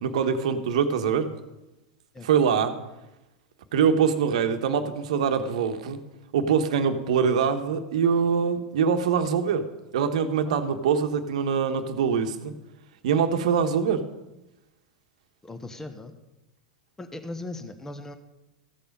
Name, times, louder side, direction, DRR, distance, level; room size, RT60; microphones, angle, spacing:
voice 1, 0.0-1.3 2.2-2.7 3.7-6.0 6.3-9.7 9.9-12.5 13.0-14.0, right 6 dB, 65° right, 8 dB, 1.2 m, -24 dB
voice 2, 15.4-16.1 17.0-18.2, left 2 dB, 10° left, 8 dB, 1.1 m, -38 dB
14.5 x 7.0 x 5.4 m, 0.98 s
figure-of-eight pair, 90°, 4 cm